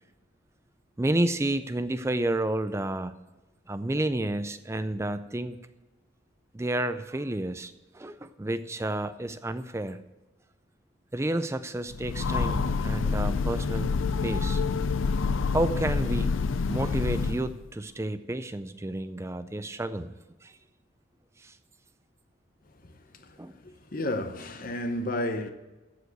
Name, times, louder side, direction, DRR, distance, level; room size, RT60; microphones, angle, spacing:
voice 1, 1.0-3.1 3.7-5.6 6.5-10.0 11.1-13.9 14.2-14.6 15.5-16.3 16.7-20.1 20.4-20.6 21.4-21.6 23.4-23.5, right 1 dB, 15° right, 0.4 m, -30 dB
Train, 11.9-17.6, left 4 dB, 80° left, 0.5 m, -27 dB
voice 2, 23.3-25.5, left 1 dB, 45° left, 0.7 m, -32 dB
14.5 x 5.0 x 7.9 m
head